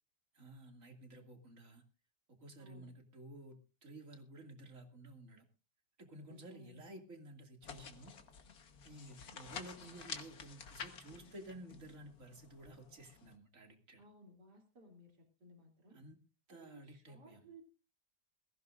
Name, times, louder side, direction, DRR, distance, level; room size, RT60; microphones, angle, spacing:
voice 1, 0.3-1.8 2.4-5.5 6.0-8.1 8.8-14.0 15.9-16.2 16.5-17.5, right 1 dB, 45° right, 4 dB, 2.8 m, -53 dB
voice 2, 2.6-2.9 6.3-7.0 14.0-16.0 16.5-17.6, right 1 dB, 65° right, 2 dB, 3.6 m, -59 dB
sound 1, 7.6-13.4, left 6 dB, 60° left, 1.8 m, -50 dB
21.5 x 15.5 x 2.5 m, 0.33 s
omnidirectional pair, 1.9 m